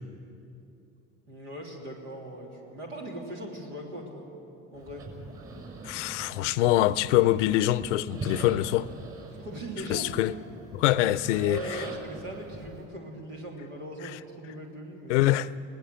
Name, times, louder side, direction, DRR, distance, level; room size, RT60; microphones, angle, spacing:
voice 1, 1.3-4.3 4.7-5.0 9.3-10.1 11.4-15.2, right 1 dB, 85° right, 3.1 m, -39 dB
sound 1, 4.7-12.9, right 3 dB, 40° right, 6.7 m, -43 dB
voice 2, 5.8-8.9 9.9-10.3 10.7-11.8 15.1-15.5, left 15 dB, 85° left, 0.6 m, -24 dB
22.0 x 18.5 x 8.2 m
hypercardioid pair, 70°, 35 cm